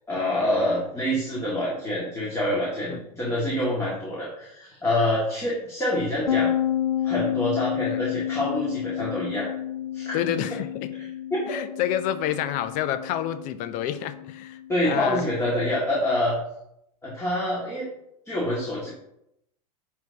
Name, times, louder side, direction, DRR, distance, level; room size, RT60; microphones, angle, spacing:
voice 1, 0.1-6.5 7.0-9.5 9.9-10.3 11.0-11.6 14.7-16.4 17.0-17.9 18.3-18.9, left 1 dB, 15° left, -6 dB, 2.2 m, -26 dB
sound 1, 6.3-15.7, left 11 dB, 85° left, 0.4 m, -30 dB
voice 2, 10.1-10.9 11.5-15.3, left 11 dB, 40° left, 12 dB, 0.6 m, -29 dB
10.0 x 3.9 x 2.9 m, 0.80 s
figure-of-eight pair, 90°, 20 cm